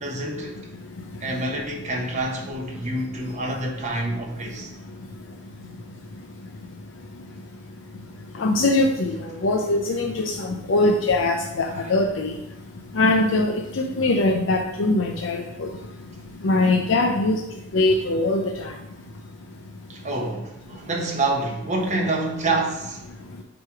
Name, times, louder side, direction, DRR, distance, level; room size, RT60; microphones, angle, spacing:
voice 1, 0.0-0.6 1.2-4.7 11.7-11.8 19.9-23.0, right 2 dB, 40° right, 1.2 m, -27 dB
voice 2, 8.4-12.3 12.9-15.7 16.4-17.4 17.7-18.7, left 2 dB, 90° left, 0.6 m, -22 dB
7.8 x 3.1 x 4.7 m
head